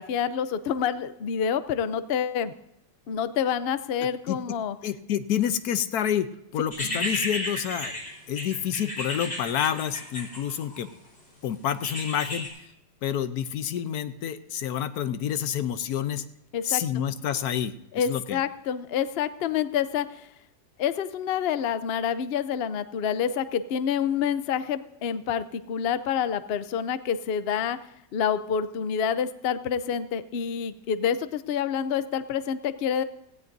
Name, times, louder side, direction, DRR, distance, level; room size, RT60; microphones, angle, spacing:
voice 1, 0.0-2.5 3.1-4.8 16.5-16.8 17.9-20.3 20.8-27.8 28.1-33.0, left 8 dB, 80° left, 12 dB, 0.5 m, -27 dB
voice 2, 4.8-8.0 8.3-10.9 11.4-12.5 13.0-16.2 16.6-18.4, left 9 dB, 65° left, 11 dB, 1.1 m, -28 dB
sound 1, 6.7-10.9 11.8-12.5, left 1 dB, 35° left, 4.4 m, -33 dB
18.0 x 16.5 x 2.6 m, 0.83 s
omnidirectional pair, 1.9 m